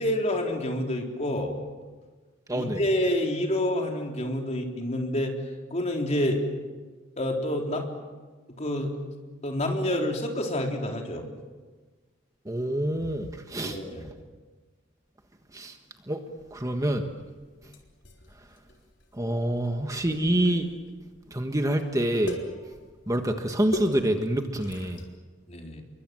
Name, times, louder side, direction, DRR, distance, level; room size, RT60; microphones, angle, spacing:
voice 1, 0.0-1.6 2.5-5.3 5.7-6.4 7.2-7.9 8.6-8.9 9.4-11.3 13.5-14.0 25.5-25.8, left 1 dB, 35° left, 2 dB, 3.9 m, -28 dB
voice 2, 2.5-2.8 12.4-13.8 14.0-14.1 15.5-15.8 16.1-16.2 16.5-17.1 19.1-20.6 21.3-22.4 23.1-25.0, right 1 dB, 20° right, 5 dB, 1.4 m, -26 dB
sound 1, 16.4-25.1, left 1 dB, 70° left, 4.0 m, -41 dB
29.0 x 23.0 x 7.7 m, 1.4 s
head